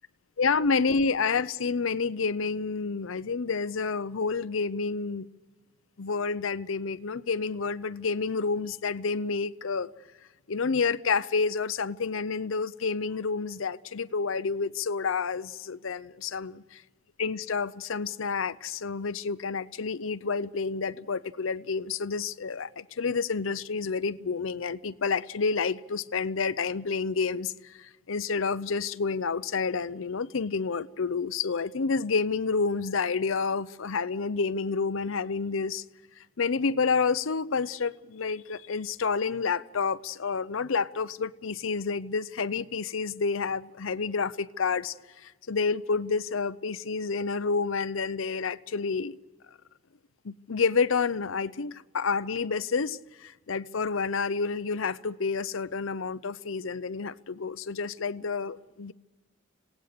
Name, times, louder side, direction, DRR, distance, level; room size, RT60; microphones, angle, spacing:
voice 1, 0.4-5.3 6.0-9.9 10.5-16.6 17.2-27.5 27.8-35.8 36.4-44.9 45.2-49.2 50.2-58.9, left 5 dB, 80° left, 0.7 m, -29 dB
26.5 x 17.5 x 6.7 m
head